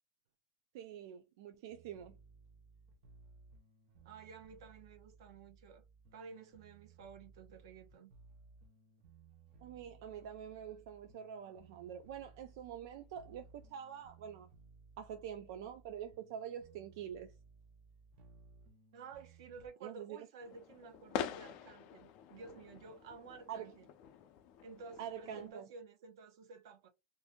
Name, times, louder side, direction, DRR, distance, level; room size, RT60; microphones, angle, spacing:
voice 1, 0.7-2.2 9.6-14.5 15.0-17.3 19.8-20.3 23.5-23.7 25.0-25.7, right 9 dB, 65° right, 0.4 m, -46 dB
sound 1, 1.7-19.7, right 4 dB, 45° right, 0.8 m, -61 dB
voice 2, 4.0-5.8 6.1-8.1 18.9-23.9 24.6-26.9, right 5 dB, 85° right, 0.7 m, -53 dB
sound 2, 20.4-25.5, left 9 dB, 40° left, 0.4 m, -46 dB
2.6 x 2.6 x 3.5 m
supercardioid pair, 175°, 2 cm